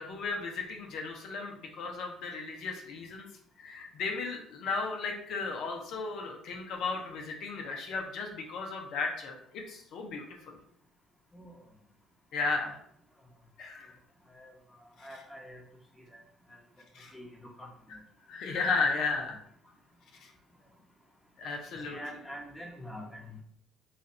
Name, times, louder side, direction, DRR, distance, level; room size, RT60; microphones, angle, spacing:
voice 1, 0.0-3.3 3.6-10.6 12.3-12.8 13.6-13.9 15.0-15.1 16.9-17.1 17.9-18.0 18.3-19.4 20.2-20.3 21.4-22.0, left 4 dB, 65° left, 1 dB, 0.7 m, -35 dB
voice 2, 15.0-15.6 16.1-16.2 17.1-17.7 21.9-23.4, equal, 5° left, 0 dB, 1.0 m, -45 dB
3.2 x 2.5 x 4.1 m, 0.67 s
supercardioid pair, 70°, 0 cm